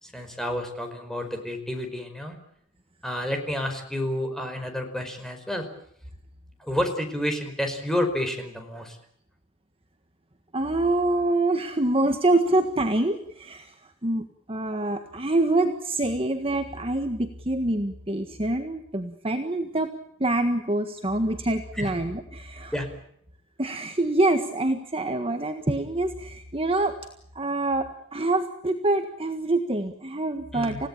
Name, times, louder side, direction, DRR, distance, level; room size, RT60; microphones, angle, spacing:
voice 1, 0.0-2.4 3.0-5.7 6.6-9.0 21.7-21.9 22.7-22.9 30.5-30.8, left 1 dB, ahead, 5 dB, 5.0 m, -30 dB
voice 2, 10.5-13.7 14.0-19.9 20.2-22.7 23.6-26.9 27.3-30.9, right 2 dB, 25° right, 5 dB, 1.6 m, -25 dB
29.0 x 17.0 x 8.7 m, 0.70 s
head